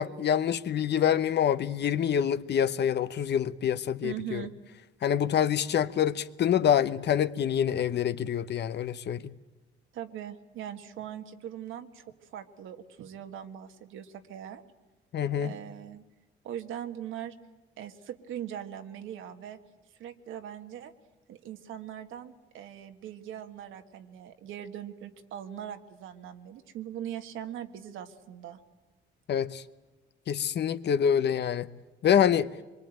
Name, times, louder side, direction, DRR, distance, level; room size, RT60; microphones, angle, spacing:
voice 1, 0.0-4.5 5.0-9.3 15.1-15.5 29.3-29.6 30.3-31.7 32.0-32.5, left 9 dB, 60° left, 1.0 m, -26 dB
voice 2, 4.0-4.5 9.9-14.6 15.4-16.0 16.4-17.3 17.8-19.6 20.0-20.9 21.3-28.6, right 10 dB, 85° right, 1.7 m, -41 dB
24.0 x 23.0 x 9.1 m
cardioid pair, 90°, 20 cm